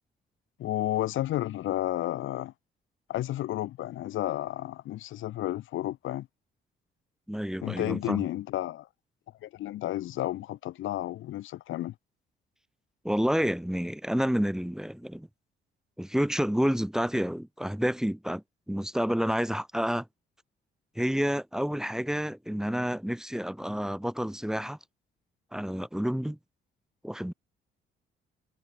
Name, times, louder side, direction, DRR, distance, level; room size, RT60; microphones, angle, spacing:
voice 1, 0.6-2.5 3.1-6.3 7.6-8.9 9.4-11.9, left 14 dB, 80° left, 1.4 m, -32 dB
voice 2, 7.3-8.3 13.0-15.3 16.0-20.1 20.9-24.8 25.5-26.4 27.0-27.3, equal, 5° right, 1.5 m, -29 dB
cardioid pair, 90°, 20 cm